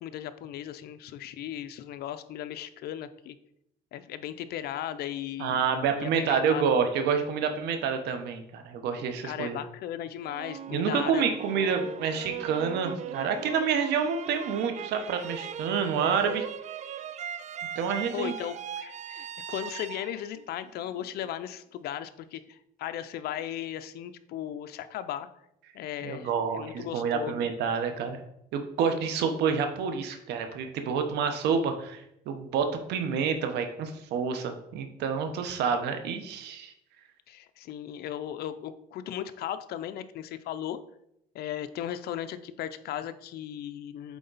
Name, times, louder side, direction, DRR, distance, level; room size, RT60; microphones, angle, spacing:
voice 1, 0.0-3.3 3.9-6.9 8.9-11.2 11.5-11.7 18.1-25.3 25.7-27.5 37.3-40.8 41.3-44.2, left 11 dB, 70° left, 11 dB, 0.6 m, -37 dB
voice 2, 5.4-9.6 10.7-16.4 17.8-18.3 26.0-28.2 28.5-36.7, right 6 dB, 80° right, 7 dB, 1.0 m, -28 dB
sound 1, 10.2-21.3, right 9 dB, 45° right, 0.4 m, -39 dB
8.3 x 3.8 x 4.0 m, 0.79 s
cardioid pair, 110°, 17 cm